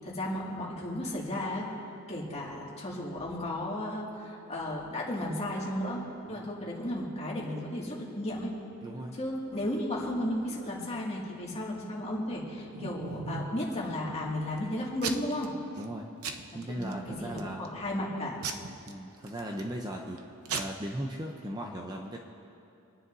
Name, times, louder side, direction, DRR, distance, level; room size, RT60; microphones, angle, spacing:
voice 1, 0.0-1.7 2.1-6.0 6.3-8.5 9.2-15.5 16.8-18.4, left 1 dB, 30° left, -4 dB, 2.2 m, -34 dB
voice 2, 8.8-9.1 15.8-16.1 16.5-17.7 18.9-20.2 20.5-22.2, right 1 dB, 20° right, 1 dB, 0.7 m, -37 dB
Packing tape duct tape / Tearing, 12.2-13.6 14.1-14.6 15.0-15.5 15.8-15.9 16.2-16.9 17.4-17.7 18.4-19.7 20.2-20.3 20.5-20.6, right 5 dB, 80° right, 0.8 m, -37 dB
28.5 x 10.0 x 2.7 m, 2.7 s
head